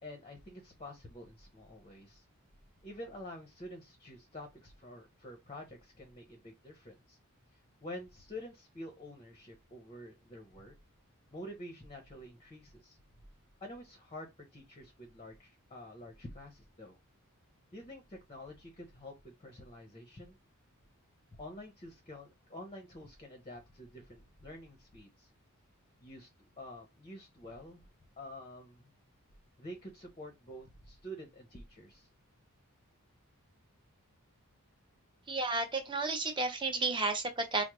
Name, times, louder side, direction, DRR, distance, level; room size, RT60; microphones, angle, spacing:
voice 1, 0.0-2.2 2.8-7.2 7.8-10.7 11.3-13.0 13.6-17.0 17.7-20.4 21.4-25.3 26.0-26.3 26.6-27.9 28.2-28.9 29.6-32.1, left 1 dB, 25° left, 0.7 m, -48 dB
voice 2, 35.3-37.6, right 3 dB, 20° right, 0.7 m, -32 dB
4.7 x 2.0 x 3.0 m
head